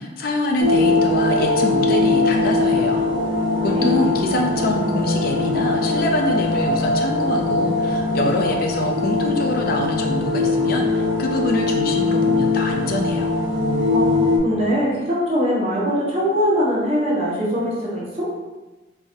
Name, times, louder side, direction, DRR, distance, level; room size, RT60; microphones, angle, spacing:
voice 1, 0.0-3.0 3.6-13.3, left 2 dB, 50° left, 2 dB, 0.4 m, -24 dB
sound 1, 0.6-14.4, left 2 dB, 75° right, 0.9 m, -21 dB
voice 2, 13.9-18.3, equal, 35° right, -8 dB, 1.0 m, -22 dB
3.8 x 2.7 x 2.5 m, 1.2 s
head